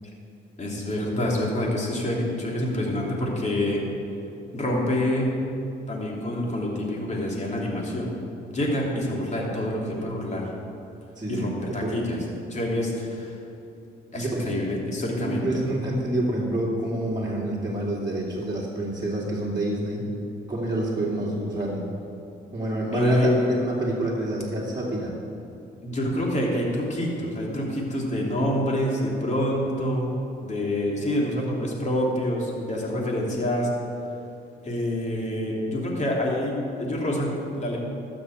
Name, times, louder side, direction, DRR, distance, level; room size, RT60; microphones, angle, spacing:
voice 1, 0.6-3.8 4.5-5.3 5.9-8.2 8.5-10.5 11.3-12.2 12.5-13.4 14.1-15.7 22.9-23.3 25.8-30.1 30.4-33.7 34.6-37.8, left 1 dB, 35° left, -2 dB, 3.0 m, -27 dB
voice 2, 11.2-11.5 11.8-12.0 14.1-14.5 15.1-20.1 20.5-21.8 22.5-25.1, right 1 dB, 20° right, -6 dB, 2.6 m, -27 dB
12.5 x 6.2 x 7.9 m, 2.7 s
cardioid pair, 90°, 20 cm